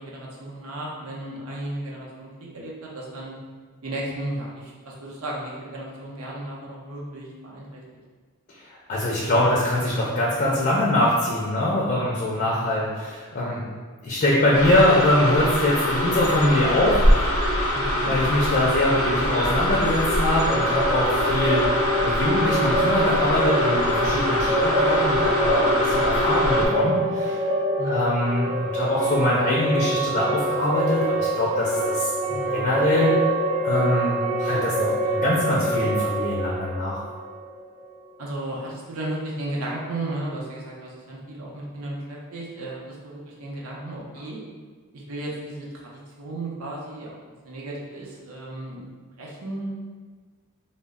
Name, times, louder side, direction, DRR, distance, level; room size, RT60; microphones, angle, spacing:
voice 1, 0.0-3.4 3.8-7.8 12.3-12.7 17.7-18.1 27.8-28.2 32.3-32.8 38.2-44.4 44.9-47.1 47.4-49.7, right 1 dB, 80° right, -4 dB, 0.6 m, -34 dB
voice 2, 8.6-13.6 14.0-17.0 18.0-27.5 27.9-33.1 33.6-37.0, left 1 dB, 40° left, -5 dB, 0.4 m, -23 dB
sound 1, 14.5-26.7, equal, 85° left, 0.6 m, -23 dB
sound 2, 20.2-38.0, right 1 dB, 30° right, 0.5 m, -25 dB
2.0 x 2.0 x 3.5 m, 1.5 s
head